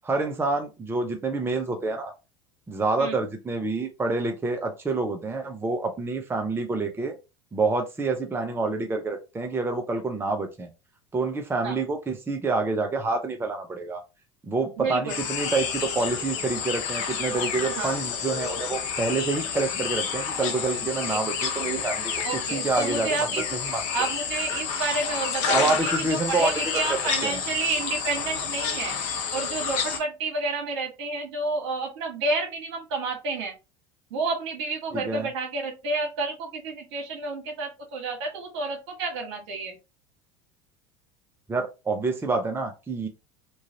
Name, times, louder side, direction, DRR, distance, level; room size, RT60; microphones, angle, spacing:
voice 1, 0.0-2.1 2.7-7.1 7.5-10.7 11.1-14.0 14.4-22.1 22.5-23.8 25.5-26.8 27.2-27.4 34.9-35.3 41.5-43.1, right 3 dB, 15° right, 4 dB, 0.6 m, -27 dB
voice 2, 14.8-15.2 17.6-18.0 21.1-21.2 22.2-23.4 23.9-29.0 29.3-33.5 34.1-39.7, right 3 dB, 70° right, 1 dB, 1.4 m, -30 dB
sound 1, 15.1-30.0, left 6 dB, 60° left, 0.9 m, -29 dB
3.0 x 2.4 x 2.7 m, 0.27 s
hypercardioid pair, 85°, 15 cm